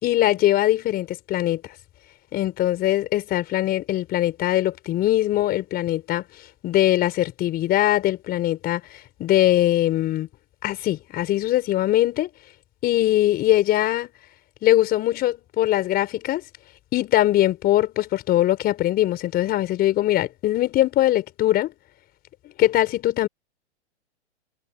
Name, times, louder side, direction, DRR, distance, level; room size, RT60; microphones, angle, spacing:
voice 1, 0.0-1.6 2.3-6.2 6.6-10.3 10.6-12.3 12.8-14.1 14.6-16.4 16.9-21.7 22.6-23.3, left 14 dB, 25° left, 4.7 m, -21 dB
hypercardioid pair, 130°, 34 cm